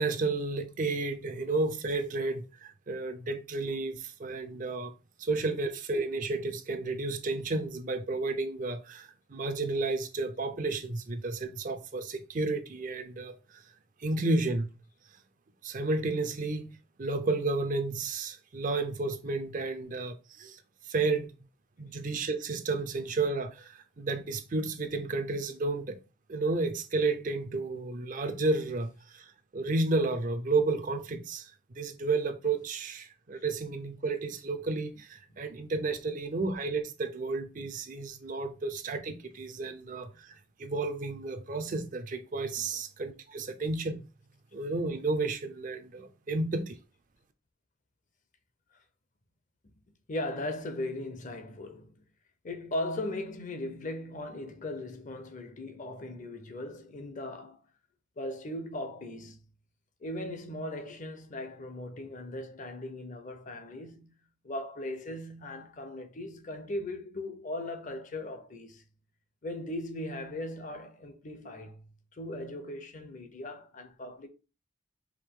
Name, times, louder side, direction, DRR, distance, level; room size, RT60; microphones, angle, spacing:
voice 1, 0.0-4.9 5.2-13.6 14.0-14.7 15.6-16.7 17.0-21.3 21.8-26.0 26.3-40.3 40.6-44.0 44.5-46.8, right 3 dB, 40° right, 0.5 m, -32 dB
voice 2, 46.3-46.7 50.1-52.0 52.4-57.6 58.2-59.4 60.0-64.1 64.4-68.8 69.4-71.8 72.1-74.3, left 1 dB, 40° left, 0.6 m, -38 dB
4.9 x 3.0 x 3.6 m
head